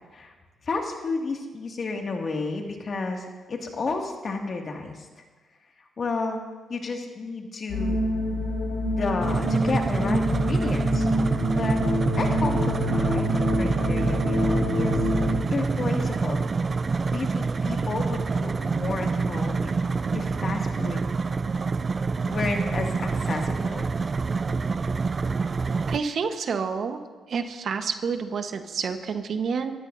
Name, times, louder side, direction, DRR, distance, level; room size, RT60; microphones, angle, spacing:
voice 1, 0.7-5.1 6.0-6.4 6.7-8.0 9.0-11.8 12.2-15.0 15.2-16.5 17.1-19.7 20.1-21.1 22.3-23.9, left 3 dB, 50° left, 2 dB, 2.2 m, -31 dB
sound 1, 7.7-15.3, left 1 dB, 90° left, 3.5 m, -26 dB
sound 2, 9.2-26.0, right 4 dB, 40° right, 0.4 m, -26 dB
voice 2, 25.9-27.0 27.3-29.7, right 5 dB, 60° right, 6 dB, 1.2 m, -29 dB
28.0 x 14.0 x 2.7 m, 1.3 s
cardioid pair, 70°, 0 cm